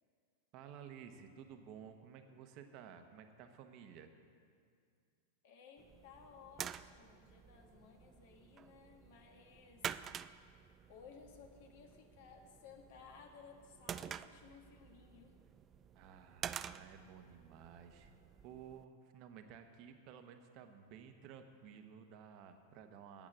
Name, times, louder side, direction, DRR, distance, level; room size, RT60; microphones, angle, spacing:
voice 1, 0.5-4.1 15.9-18.2 18.4-23.3, right 8 dB, 50° right, 7 dB, 1.0 m, -54 dB
voice 2, 5.4-10.2 10.9-15.4, left 6 dB, 65° left, 3 dB, 1.6 m, -58 dB
sound 1, 5.8-18.8, right 8 dB, 30° right, 0.3 m, -49 dB
9.1 x 8.3 x 7.5 m, 2.2 s
hypercardioid pair, 105°, 0 cm